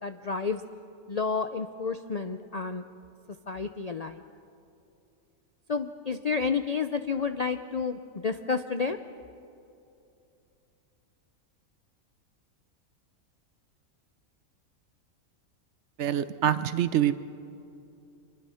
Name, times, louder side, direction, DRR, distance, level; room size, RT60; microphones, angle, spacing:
voice 1, 0.0-0.6 1.1-2.8 3.5-4.2 5.7-9.0, left 5 dB, 50° left, 8 dB, 0.4 m, -30 dB
voice 2, 16.0-17.1, right 10 dB, 65° right, 13 dB, 0.9 m, -25 dB
25.5 x 21.0 x 5.7 m, 2.7 s
omnidirectional pair, 1.4 m